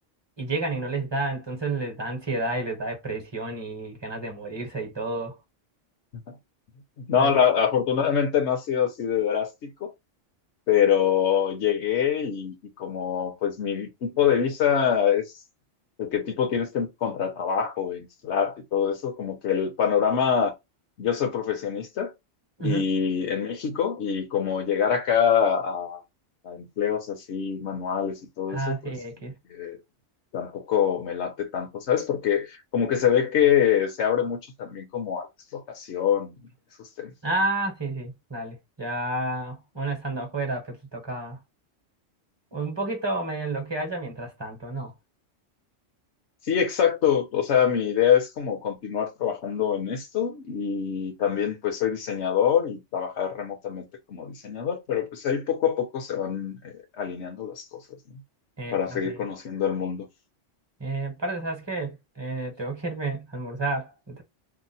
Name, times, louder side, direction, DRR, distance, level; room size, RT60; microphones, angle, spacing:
voice 1, 0.4-5.3 7.2-7.3 22.6-22.8 28.5-29.3 37.2-41.4 42.5-44.9 58.6-59.2 60.8-64.2, right 2 dB, 25° right, 0.8 m, -30 dB
voice 2, 7.0-9.9 10.7-15.2 16.0-20.5 21.0-22.1 22.6-26.0 26.4-28.9 29.5-29.8 30.3-35.3 35.5-36.3 36.8-37.1 46.5-57.8 58.1-58.2 58.7-60.1, left 8 dB, 65° left, 1.1 m, -25 dB
2.9 x 2.0 x 4.0 m
omnidirectional pair, 1.2 m